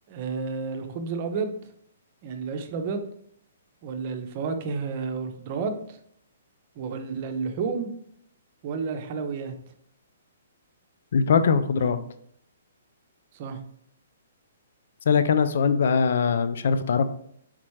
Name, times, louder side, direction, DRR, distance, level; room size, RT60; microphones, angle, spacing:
voice 1, 0.1-1.5 2.2-3.0 3.8-6.0 6.8-7.9 8.6-9.5 11.8-11.9 13.3-13.6, right 5 dB, 45° right, 6 dB, 0.7 m, -31 dB
voice 2, 11.1-12.0 15.1-17.0, left 6 dB, 65° left, 11 dB, 0.4 m, -21 dB
4.2 x 3.7 x 3.1 m, 0.68 s
hypercardioid pair, 130°, 0 cm